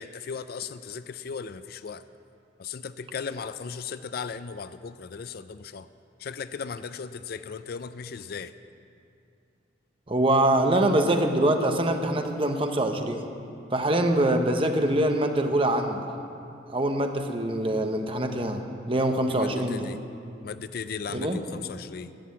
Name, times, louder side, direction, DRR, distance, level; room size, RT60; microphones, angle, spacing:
voice 1, 0.0-2.0 2.6-5.9 6.2-8.5 19.3-20.0 20.4-22.1, left 6 dB, 50° left, 13 dB, 0.4 m, -37 dB
voice 2, 10.1-13.2 13.7-16.0 16.7-18.6 18.9-19.9 21.1-21.4, right 1 dB, 30° right, 5 dB, 1.0 m, -24 dB
11.5 x 10.0 x 8.5 m, 2.6 s
head